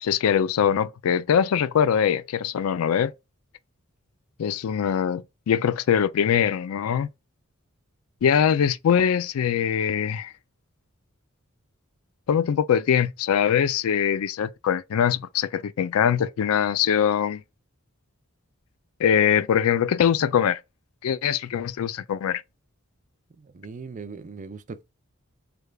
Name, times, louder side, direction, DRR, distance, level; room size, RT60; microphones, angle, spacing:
voice 1, 0.0-3.1 4.4-7.1 8.2-10.3 12.3-17.4 19.0-20.6 21.0-22.4, left 8 dB, 80° left, 0.4 m, -22 dB
voice 2, 23.4-24.8, right 4 dB, 35° right, 0.4 m, -39 dB
3.4 x 3.3 x 2.3 m
head